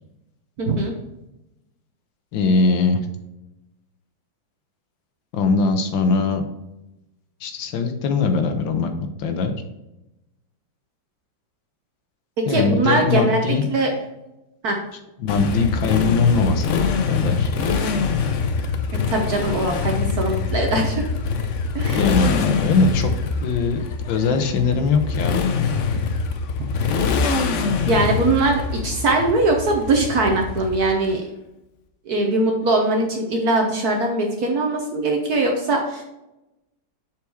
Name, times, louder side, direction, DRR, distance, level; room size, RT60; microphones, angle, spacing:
voice 1, 0.6-0.9 12.5-13.9 14.6-14.8 18.9-20.9 21.7-22.0 25.9-26.0 26.6-26.7 27.5-31.2 32.1-36.0, right 2 dB, 60° right, 1 dB, 1.3 m, -21 dB
voice 2, 2.3-3.0 5.3-6.4 7.4-8.9 9.2-9.5 12.5-13.6 15.2-17.5 22.0-23.1 23.4-23.8 24.1-25.4, left 4 dB, 85° left, 7 dB, 1.6 m, -21 dB
Motorcycle, 15.3-31.1, left 5 dB, 65° left, 0.7 m, -24 dB
7.1 x 4.7 x 4.5 m, 0.93 s
omnidirectional pair, 2.0 m